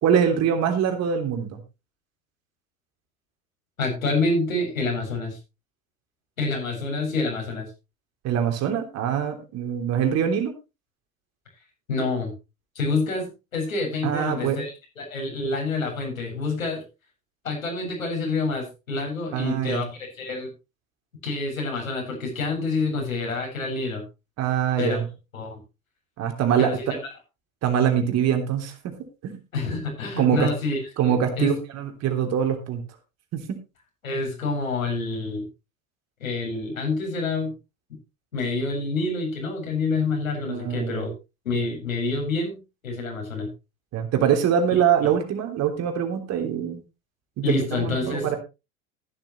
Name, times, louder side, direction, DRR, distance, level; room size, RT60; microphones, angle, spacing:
voice 1, 0.0-1.6 8.2-10.5 14.0-14.6 19.3-19.8 24.4-25.0 26.2-26.7 27.6-28.9 29.2-29.4 30.2-30.5 31.0-32.8 33.3-33.6 40.5-41.1 43.9-46.8 47.4-48.4, right 8 dB, 40° right, 4 dB, 3.3 m, -23 dB
voice 2, 3.8-5.4 6.4-7.7 11.9-12.3 12.7-16.8 17.4-20.5 21.2-24.0 24.8-25.0 25.3-25.6 26.6-27.0 29.5-31.5 34.0-35.5 36.2-37.5 38.3-41.1 41.4-43.5 45.0-45.1 47.4-48.3, left 3 dB, 75° left, 0 dB, 7.7 m, -27 dB
14.5 x 12.0 x 3.1 m, 0.28 s
figure-of-eight pair, 80°, 41 cm